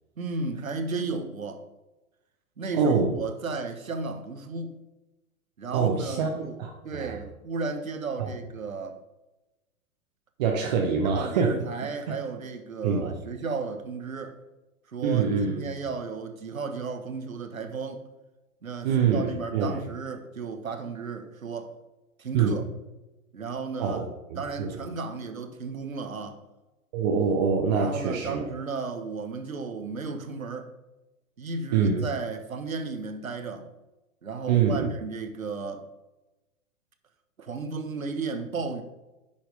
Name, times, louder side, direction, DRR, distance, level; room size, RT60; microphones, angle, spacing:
voice 1, 0.2-1.6 2.6-4.8 5.6-9.0 11.0-14.4 14.9-18.0 18.6-21.7 22.2-22.7 23.3-24.1 24.3-26.4 27.7-30.7 31.4-33.7 34.2-35.9 37.4-38.8, right 4 dB, 70° right, 1.3 m, -34 dB
voice 2, 2.8-3.1 5.7-7.1 8.2-8.3 10.4-11.6 12.1-12.2 12.8-13.1 15.0-15.6 18.8-19.8 22.3-22.6 23.8-24.8 26.9-28.4 31.7-32.1 34.5-34.9, right 6 dB, 30° right, 0.9 m, -25 dB
10.5 x 4.5 x 5.2 m
figure-of-eight pair, 115°, 43 cm